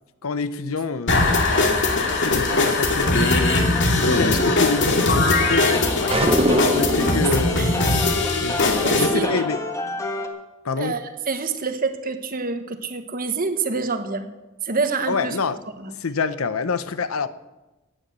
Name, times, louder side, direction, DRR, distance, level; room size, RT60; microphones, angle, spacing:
voice 1, 0.2-1.5 2.1-5.9 6.2-8.0 8.4-9.6 10.6-11.0 15.1-15.6 16.0-17.3, left 4 dB, 90° left, 0.8 m, -27 dB
sound 1, 1.1-9.1, left 2 dB, 60° left, 2.3 m, -20 dB
sound 2, 2.5-10.3, left 2 dB, 15° left, 1.5 m, -31 dB
sound 3, 6.1-7.1, right 1 dB, 25° right, 0.7 m, -21 dB
voice 2, 6.2-7.3 7.6-7.7 8.8-9.4 10.8-11.0 11.3-14.3 14.6-15.4 15.8-15.9, right 4 dB, 45° right, 1.3 m, -27 dB
16.0 x 9.9 x 6.8 m
head